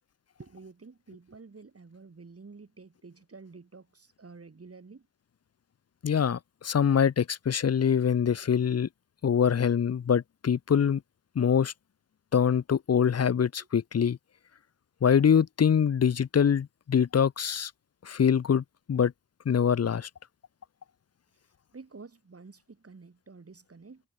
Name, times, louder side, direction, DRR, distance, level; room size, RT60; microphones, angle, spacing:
voice 1, 0.4-5.1 21.7-24.0, right 4 dB, 45° right, 7.2 m, -49 dB
voice 2, 6.0-8.9 9.2-11.0 11.4-11.7 12.3-14.2 15.0-17.7 18.0-19.1 19.5-20.1, left 7 dB, 50° left, 0.8 m, -24 dB
cardioid pair, 70°, 33 cm